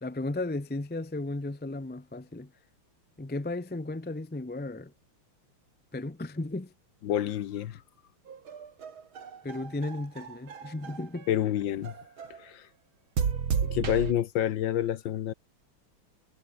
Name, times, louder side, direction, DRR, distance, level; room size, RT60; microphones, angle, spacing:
voice 1, 0.0-2.5 3.2-4.9 5.9-6.7 9.4-11.3, left 2 dB, 10° left, 0.4 m, -35 dB
voice 2, 7.0-7.8 11.3-11.9 12.4-12.7 13.7-15.3, left 11 dB, 70° left, 1.6 m, -28 dB
sound 1, 8.3-11.3 11.8-12.4 13.2-14.1, right 7 dB, 70° right, 2.9 m, -33 dB
omnidirectional pair, 2.3 m